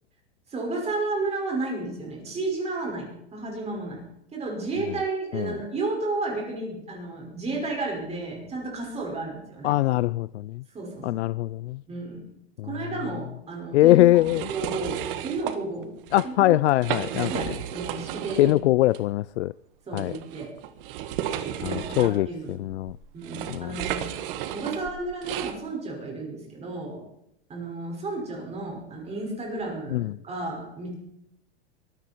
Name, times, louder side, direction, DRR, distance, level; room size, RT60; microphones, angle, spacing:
voice 1, 0.5-4.0 4.3-9.8 10.7-11.2 11.9-12.3 12.6-14.2 14.5-15.9 16.2-16.6 17.3-18.6 19.9-20.5 21.4-22.6 23.1-24.1 24.5-27.0 27.5-30.9, right 3 dB, 20° right, 5.6 m, -32 dB
voice 2, 9.6-10.6 11.0-11.8 12.6-12.7 13.7-14.5 16.1-17.4 18.4-19.5 19.9-20.1 21.6-23.0 23.5-23.7 29.9-30.1, left 16 dB, 90° left, 0.5 m, -22 dB
sound 1, 14.2-15.6 16.0-16.3 16.7-18.6 18.9-19.0 19.9-25.6, right 11 dB, 55° right, 1.8 m, -33 dB
23.5 x 13.5 x 4.5 m
supercardioid pair, 145°, 33 cm